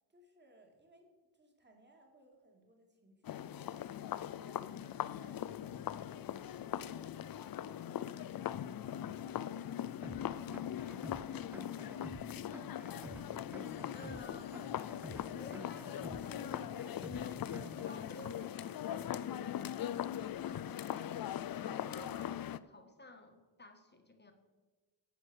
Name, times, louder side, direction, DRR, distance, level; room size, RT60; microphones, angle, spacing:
voice 1, 0.1-13.3, right 1 dB, 20° right, 2 dB, 2.2 m, -64 dB
sound 1, 3.2-22.6, left 10 dB, 50° left, 0.4 m, -40 dB
sound 2, 10.0-18.0, right 1 dB, 5° right, 0.4 m, -50 dB
voice 2, 13.9-21.2 21.6-24.3, left 2 dB, 20° left, 5 dB, 1.4 m, -55 dB
11.5 x 8.2 x 6.3 m, 1.3 s
wide cardioid pair, 140°, 47 cm